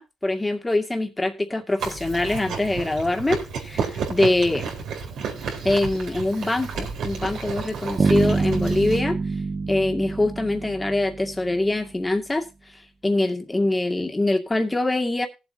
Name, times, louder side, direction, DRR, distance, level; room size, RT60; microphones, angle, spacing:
voice 1, 0.0-4.7 5.6-9.2 9.7-12.4 13.0-15.3, left 2 dB, 15° left, 4 dB, 2.2 m, -24 dB
Chewing mastication, 1.8-9.0, right 5 dB, 75° right, 4.1 m, -32 dB
Bass guitar, 8.0-11.8, right 4 dB, 35° right, 2.0 m, -25 dB
18.5 x 7.9 x 2.9 m, 0.29 s
cardioid pair, 90°, 0 cm